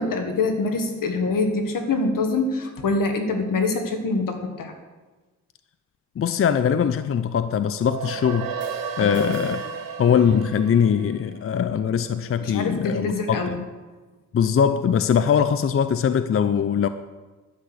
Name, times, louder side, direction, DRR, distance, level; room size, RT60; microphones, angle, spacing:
voice 1, 0.0-4.7 9.0-9.4 12.4-13.5, left 3 dB, 80° left, 5 dB, 1.6 m, -25 dB
voice 2, 6.2-8.5 9.0-9.6 10.0-13.7 14.3-16.9, left 7 dB, 45° left, 12 dB, 0.5 m, -21 dB
sound 1, 7.7-12.3, right 6 dB, 85° right, 1.1 m, -33 dB
11.0 x 6.1 x 8.1 m, 1.3 s
cardioid pair, 100°, 33 cm